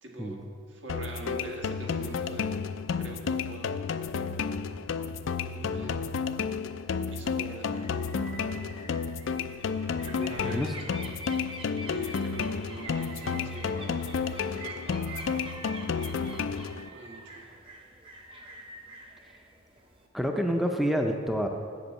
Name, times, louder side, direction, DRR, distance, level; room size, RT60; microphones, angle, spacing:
voice 1, 0.0-2.6 2.9-3.7 5.2-6.0 7.1-7.9 10.0-10.6 11.8-15.2 16.9-17.4, right 2 dB, 70° right, 0 dB, 1.7 m, -44 dB
sound 1, 0.9-16.9, left 5 dB, 85° left, 0.4 m, -31 dB
sound 2, 7.6-20.1, right 2 dB, 30° right, 1.0 m, -46 dB
voice 2, 10.4-10.7 20.1-21.5, equal, ahead, 3 dB, 0.5 m, -28 dB
8.1 x 7.6 x 7.2 m, 2.2 s
head